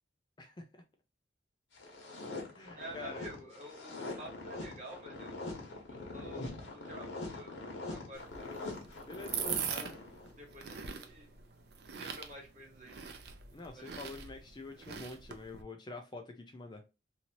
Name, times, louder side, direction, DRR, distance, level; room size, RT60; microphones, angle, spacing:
voice 1, 0.4-0.8 2.5-3.2 9.1-9.9 13.5-16.8, left 3 dB, 25° left, 4 dB, 0.4 m, -47 dB
sound 1, 1.7-10.4, left 2 dB, 80° left, 1.2 m, -43 dB
voice 2, 2.7-8.3 10.4-11.3 11.9-13.0 13.7-14.0, right 1 dB, 40° right, -1 dB, 1.4 m, -49 dB
sound 2, 8.1-15.6, right 7 dB, 55° right, 0.4 m, -42 dB
2.8 x 2.6 x 2.8 m, 0.27 s
head